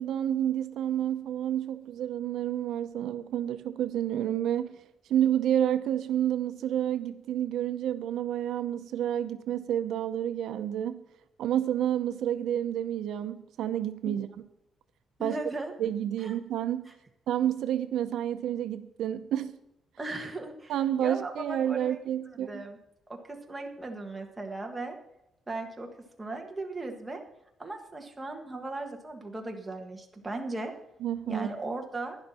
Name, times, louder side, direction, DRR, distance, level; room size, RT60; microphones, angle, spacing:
voice 1, 0.0-4.8 5.1-11.0 11.4-14.3 15.2-15.4 15.8-16.9 17.3-19.6 20.7-22.7 31.0-31.5, right 10 dB, 90° right, 0.7 m, -29 dB
voice 2, 15.2-15.7 16.2-16.3 16.9-17.0 20.0-20.7 21.0-22.0 22.4-22.8 23.1-24.9 25.5-25.9 26.2-27.2 27.6-30.7 31.3-32.2, right 2 dB, 10° right, 1.5 m, -37 dB
11.5 x 10.5 x 4.3 m
cardioid pair, 165°, 0 cm